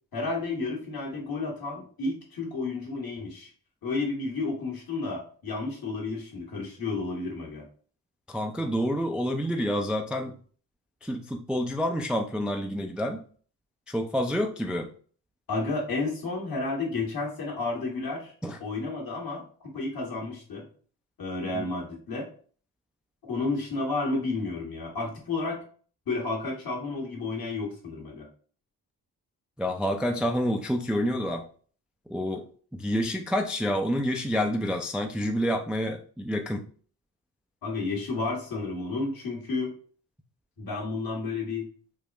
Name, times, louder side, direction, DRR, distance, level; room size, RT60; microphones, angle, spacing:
voice 1, 0.1-3.5 3.8-7.7 15.5-18.3 18.6-20.6 21.2-22.3 23.3-25.6 26.1-28.3 37.6-39.7 40.6-41.7, left 3 dB, 60° left, -1 dB, 1.3 m, -31 dB
voice 2, 8.3-10.3 11.0-13.2 13.9-14.9 18.4-18.6 21.6-21.7 29.6-31.5 32.1-32.5 32.7-36.6, equal, 5° right, 4 dB, 0.3 m, -28 dB
3.5 x 2.1 x 2.4 m, 0.43 s
supercardioid pair, 45°, 41 cm